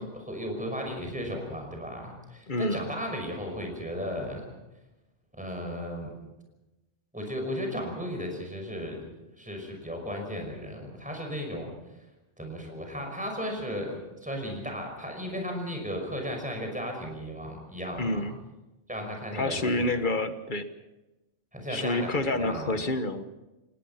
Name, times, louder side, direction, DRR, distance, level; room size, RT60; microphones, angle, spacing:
voice 1, 0.0-4.5 5.3-6.1 7.1-9.0 9.4-11.7 12.4-18.3 18.9-20.0 21.5-22.8, equal, 5° right, 2 dB, 5.7 m, -35 dB
voice 2, 2.5-2.8 18.0-18.3 19.3-20.7 21.7-23.2, left 2 dB, 45° left, 9 dB, 1.4 m, -28 dB
28.5 x 18.5 x 5.7 m, 1.0 s
omnidirectional pair, 1.2 m